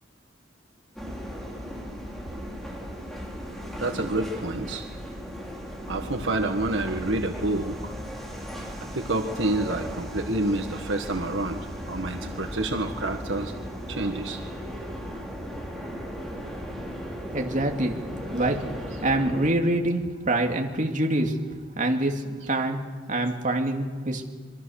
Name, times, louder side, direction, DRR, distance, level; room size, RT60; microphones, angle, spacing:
sound 1, 1.0-19.5, equal, ahead, 4.3 m, -36 dB
voice 1, 3.8-4.8 5.9-7.9 8.9-11.6 11.9-13.5 13.9-14.4, right 2 dB, 80° right, 5 dB, 1.7 m, -28 dB
voice 2, 17.3-18.0 18.3-18.6 19.0-21.4 21.8-22.8 23.1-24.2, right 1 dB, 45° right, 2 dB, 2.6 m, -25 dB
26.5 x 23.5 x 6.6 m, 1.4 s
head